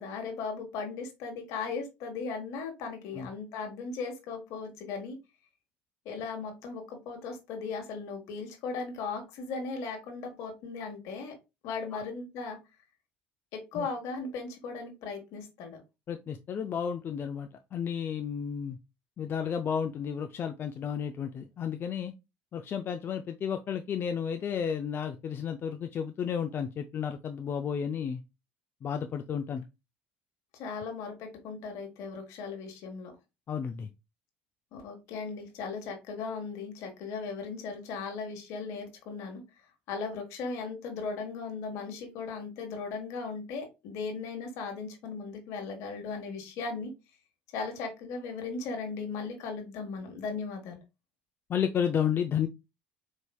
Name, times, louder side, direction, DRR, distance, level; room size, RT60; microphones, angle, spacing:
voice 1, 0.0-5.2 6.0-11.3 11.6-12.6 13.5-15.8 30.5-33.1 34.7-39.4 39.9-46.9 47.5-50.8, left 4 dB, 70° left, 1.2 m, -37 dB
voice 2, 16.1-18.8 19.2-22.1 22.5-28.2 28.8-29.7 33.5-33.9 51.5-52.5, left 8 dB, 40° left, 0.4 m, -32 dB
4.2 x 3.1 x 2.2 m
hypercardioid pair, 75°, 6 cm